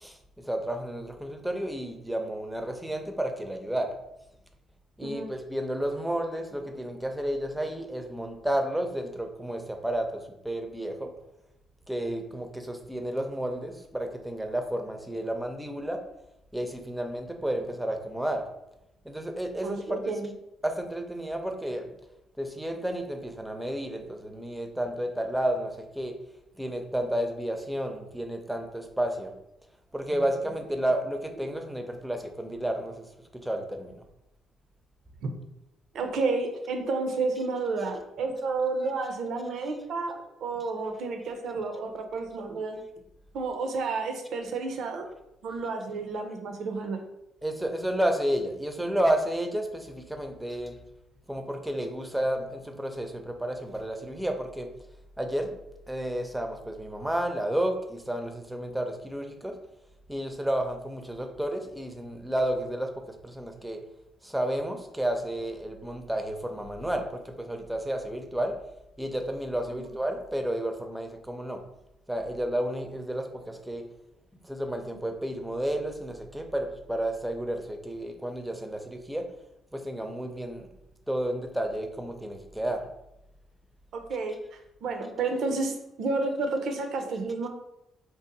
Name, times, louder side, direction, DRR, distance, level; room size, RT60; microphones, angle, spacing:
voice 1, 0.5-3.9 5.0-11.1 11.9-16.0 16.5-18.4 19.1-20.1 20.6-21.8 22.4-26.1 26.6-29.3 29.9-33.0 33.4-33.9 47.4-50.7 51.3-54.7 55.2-55.5 55.9-59.5 60.1-62.9 63.2-63.8 64.2-68.5 69.0-71.6 72.1-73.8 74.5-79.2 79.7-80.7 81.1-82.8, right 1 dB, 5° right, 4 dB, 0.5 m, -31 dB
voice 2, 5.0-5.3 19.6-20.3 30.1-30.3 35.2-35.3 35.9-42.8 43.3-45.1 45.4-47.0 69.7-69.9 83.9-87.5, right 3 dB, 70° right, 4 dB, 0.5 m, -31 dB
2.6 x 2.0 x 3.9 m, 0.87 s
supercardioid pair, 60°, 0 cm